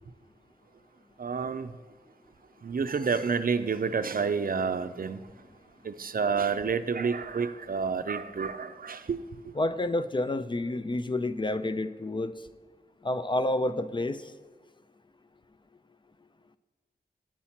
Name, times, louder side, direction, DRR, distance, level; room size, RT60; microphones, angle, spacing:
voice 1, 1.2-1.8 2.6-5.3 5.8-9.5, right 5 dB, 60° right, 0.5 m, -29 dB
voice 2, 9.6-12.3 13.0-14.2, left 1 dB, 30° left, 0.4 m, -29 dB
8.6 x 4.3 x 7.1 m
wide cardioid pair, 70°, 17 cm